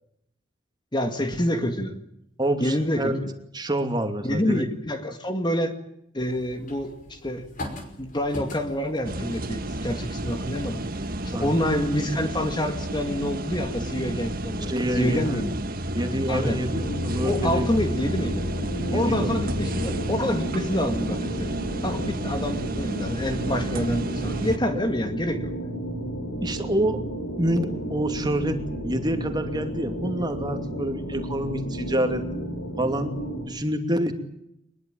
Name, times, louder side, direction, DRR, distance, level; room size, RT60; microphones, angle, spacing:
voice 1, 0.9-2.0 2.6-3.3 4.2-5.7 6.1-7.5 8.0-10.8 11.2-15.5 16.3-16.6 17.2-18.5 18.9-25.5, left 1 dB, 25° left, 7 dB, 2.1 m, -27 dB
voice 2, 2.4-3.2 3.5-4.6 11.3-11.6 14.6-15.6 15.9-17.8 18.9-19.3 26.4-27.0 27.4-28.6 28.8-32.3 32.8-33.1 33.4-34.1, right 1 dB, 20° right, 5 dB, 2.7 m, -27 dB
sound 1, 6.2-12.5, left 1 dB, 45° left, 5.4 m, -42 dB
sound 2, 9.0-24.6, right 1 dB, 50° right, 1.7 m, -31 dB
sound 3, 16.7-33.5, right 1 dB, 80° left, 5.7 m, -32 dB
24.5 x 21.5 x 9.0 m, 0.79 s
head